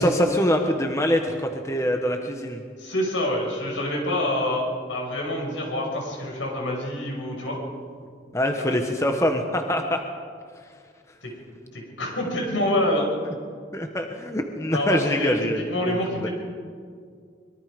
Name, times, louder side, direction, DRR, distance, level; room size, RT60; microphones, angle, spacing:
voice 1, 0.0-2.6 4.3-4.4 8.3-10.0 13.7-16.3, equal, 15° left, 4 dB, 1.2 m, -24 dB
voice 2, 2.8-7.6 8.6-8.7 11.2-11.3 11.7-13.1 14.7-15.3 15.7-16.3, left 1 dB, 80° left, 0 dB, 6.4 m, -26 dB
24.0 x 22.5 x 5.2 m, 2.1 s
head